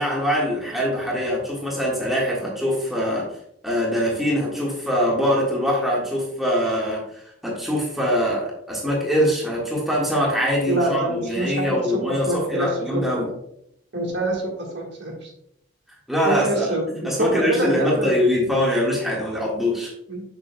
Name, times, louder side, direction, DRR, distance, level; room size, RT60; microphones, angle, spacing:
voice 1, 0.0-3.3 3.6-7.0 7.4-13.3 16.1-16.8 17.0-19.9, equal, ahead, -4 dB, 1.7 m, -23 dB
voice 2, 10.7-13.3 13.9-15.3 16.2-18.2 20.1-20.2, right 1 dB, 55° right, -1 dB, 1.6 m, -26 dB
7.1 x 6.7 x 2.3 m, 0.74 s
head